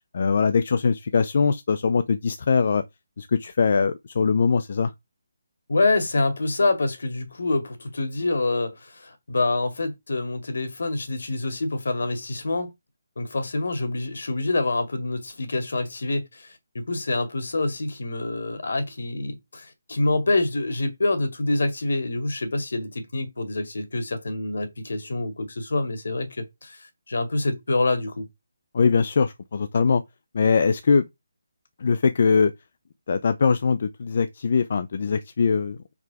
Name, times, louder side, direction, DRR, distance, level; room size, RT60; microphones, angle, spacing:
voice 1, 0.1-2.8 3.2-4.9 28.7-30.0 30.3-31.1 31.8-32.5 33.1-35.8, left 5 dB, 45° left, 0.5 m, -21 dB
voice 2, 5.7-12.7 13.2-28.3 28.8-28.9, left 2 dB, 65° left, 2.0 m, -26 dB
4.9 x 4.8 x 4.7 m
hypercardioid pair, 170°, 0 cm